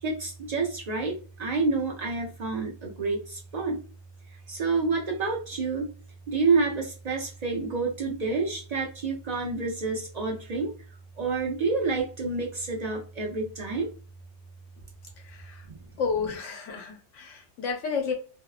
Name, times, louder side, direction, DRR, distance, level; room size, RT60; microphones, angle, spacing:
voice 1, 0.0-3.8 4.5-5.9 6.3-10.7 11.2-13.9 15.7-15.8, right 4 dB, 55° right, 0 dB, 0.4 m, -28 dB
voice 2, 15.2-15.6 16.0-18.1, left 5 dB, 90° left, 3 dB, 1.1 m, -31 dB
2.7 x 2.1 x 2.3 m, 0.37 s
omnidirectional pair, 1.2 m